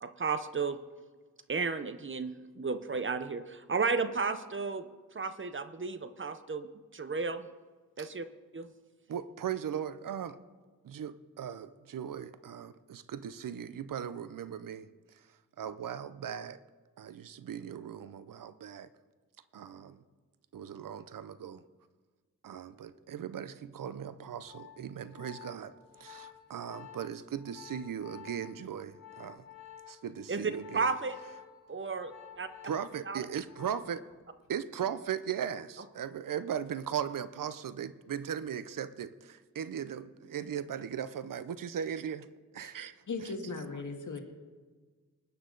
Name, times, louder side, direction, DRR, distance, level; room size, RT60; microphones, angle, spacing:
voice 1, 0.0-0.8 1.5-4.9 5.1-7.5 8.0-8.2 8.5-8.7 30.3-31.2 31.7-32.5 33.1-33.3, right 4 dB, 40° right, 0.8 m, -33 dB
voice 2, 9.1-10.4 10.8-14.9 15.6-16.6 17.0-18.9 19.5-20.0 20.5-21.6 22.4-25.7 26.0-29.4 29.9-30.9 32.6-34.0 34.5-42.3 42.5-42.9 43.2-43.5, right 8 dB, 80° right, 0.6 m, -38 dB
Organ, 24.1-34.1 34.4-34.7, left 10 dB, 85° left, 2.7 m, -52 dB
voice 3, 43.1-44.2, left 4 dB, 65° left, 1.8 m, -38 dB
20.0 x 9.4 x 3.9 m
wide cardioid pair, 75°, 33 cm